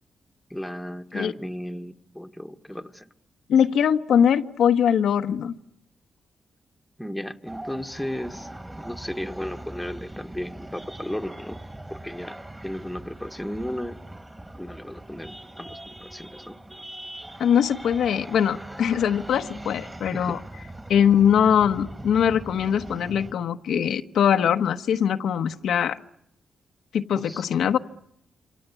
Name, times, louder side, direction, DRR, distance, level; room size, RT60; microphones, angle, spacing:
voice 1, 0.5-3.1 7.0-8.5 8.8-11.6 11.9-14.0 14.6-16.6 20.1-20.4 27.1-27.4, equal, 5° left, 6 dB, 1.5 m, -35 dB
voice 2, 3.5-5.5 17.4-20.4 20.9-26.0 26.9-27.8, left 8 dB, 85° left, 6 dB, 1.2 m, -22 dB
sound 1, 7.5-23.3, right 1 dB, 15° right, 2.3 m, -41 dB
28.0 x 25.5 x 8.3 m, 0.77 s
cardioid pair, 95°, 0 cm